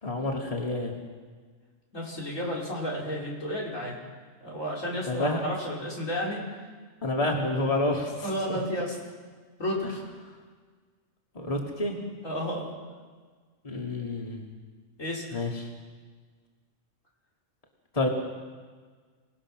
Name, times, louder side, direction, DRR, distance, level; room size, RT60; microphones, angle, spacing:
voice 1, 0.0-1.0 5.0-5.4 7.0-8.6 11.3-12.0 13.6-14.4 15.3-15.7 17.9-18.1, left 2 dB, 25° left, 0 dB, 2.4 m, -29 dB
voice 2, 1.9-4.0 4.4-6.4 8.2-9.0 9.6-10.0 12.2-12.7 15.0-15.4, equal, 85° left, -3 dB, 5.3 m, -32 dB
27.0 x 18.5 x 6.2 m, 1.5 s
omnidirectional pair, 1.3 m